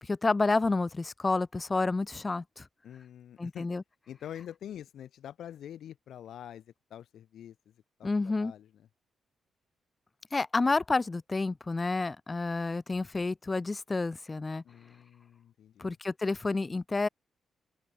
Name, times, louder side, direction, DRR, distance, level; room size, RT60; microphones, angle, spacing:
voice 1, 0.0-2.7 3.4-3.8 8.0-8.5 10.3-14.6 15.8-17.1, left 3 dB, 20° left, 0.5 m, -29 dB
voice 2, 2.8-3.7 4.1-7.7 8.0-8.1 8.4-8.7 14.6-15.9, left 10 dB, 75° left, 5.3 m, -45 dB
open air
cardioid pair, 140°, 0 cm